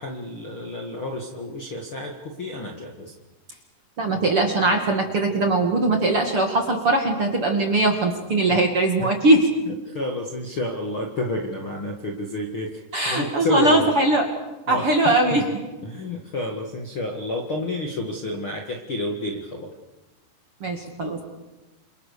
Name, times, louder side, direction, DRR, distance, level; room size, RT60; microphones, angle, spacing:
voice 1, 0.0-3.1 8.5-8.7 9.0-9.2 9.7-13.9 14.7-15.4 15.8-19.7, left 1 dB, 40° left, 1 dB, 2.0 m, -30 dB
voice 2, 4.0-9.5 12.9-14.3 14.7-15.5 20.6-21.2, right 2 dB, 40° right, 3 dB, 2.4 m, -20 dB
28.5 x 28.0 x 6.8 m, 1.1 s
omnidirectional pair, 5.1 m